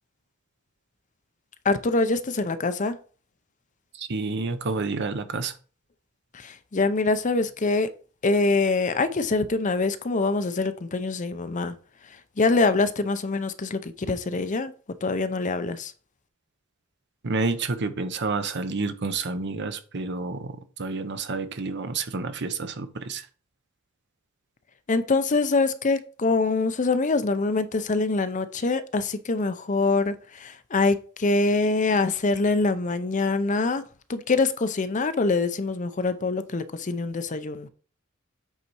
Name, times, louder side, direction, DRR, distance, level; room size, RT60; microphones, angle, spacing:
voice 1, 1.6-3.0 6.3-7.9 8.2-11.7 12.4-14.7 15.0-15.9 24.9-33.8 34.1-37.7, left 3 dB, 35° left, 0.6 m, -24 dB
voice 2, 3.9-5.5 17.2-23.3, right 3 dB, 55° right, 0.8 m, -29 dB
8.1 x 4.1 x 4.6 m
head